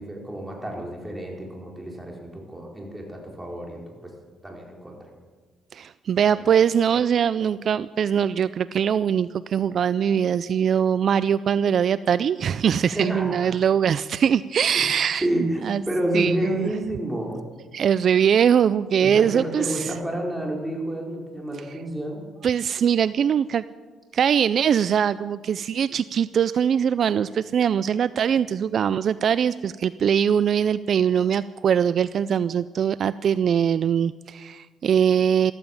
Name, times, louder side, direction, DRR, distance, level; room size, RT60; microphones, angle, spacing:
voice 1, 0.0-4.1 4.4-5.0 12.9-13.6 14.7-14.9 15.2-17.4 19.0-22.2, right 1 dB, 10° right, 0 dB, 4.3 m, -29 dB
voice 2, 5.7-15.3 15.6-15.8 16.1-16.7 17.7-19.9 22.4-23.6 24.1-35.5, right 8 dB, 60° right, 16 dB, 0.4 m, -22 dB
14.0 x 14.0 x 7.2 m, 1.5 s
cardioid pair, 90°, 0 cm